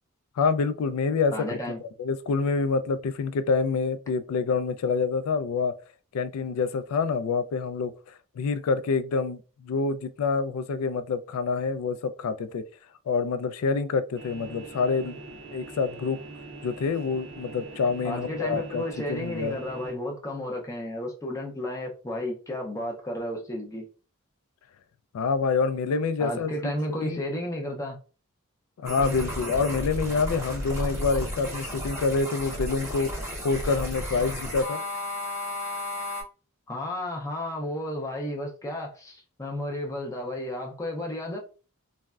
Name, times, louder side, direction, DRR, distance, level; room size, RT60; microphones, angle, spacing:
voice 1, 0.4-5.8 6.1-12.6 13.1-15.2 15.5-16.2 16.6-18.8 19.1-19.6 25.1-26.7 27.0-27.2 28.8-34.8, left 4 dB, 85° left, 0.3 m, -27 dB
voice 2, 1.3-1.8 18.0-23.9 26.2-28.0 36.7-41.4, left 1 dB, 15° left, 0.4 m, -33 dB
sound 1, 14.2-19.9, right 2 dB, 50° right, 0.5 m, -43 dB
sound 2, 28.8-36.2, left 1 dB, 10° right, 0.8 m, -33 dB
3.3 x 2.1 x 2.3 m
head